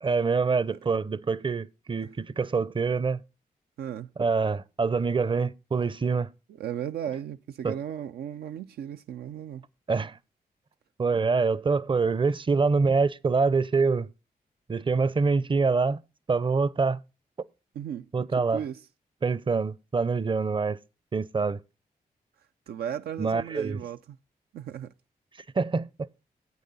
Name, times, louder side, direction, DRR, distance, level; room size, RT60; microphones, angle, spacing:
voice 1, 0.0-3.2 4.2-6.3 7.6-7.8 9.9-10.2 11.0-14.1 14.7-16.0 16.3-17.0 18.1-18.6 19.2-20.8 21.1-21.6 23.2-23.8 25.6-25.9, right 4 dB, 30° right, 0.6 m, -25 dB
voice 2, 3.8-4.1 6.6-9.6 17.8-18.8 22.7-24.2 24.5-24.9, right 9 dB, 80° right, 0.4 m, -36 dB
9.3 x 8.5 x 4.0 m
supercardioid pair, 45°, 16 cm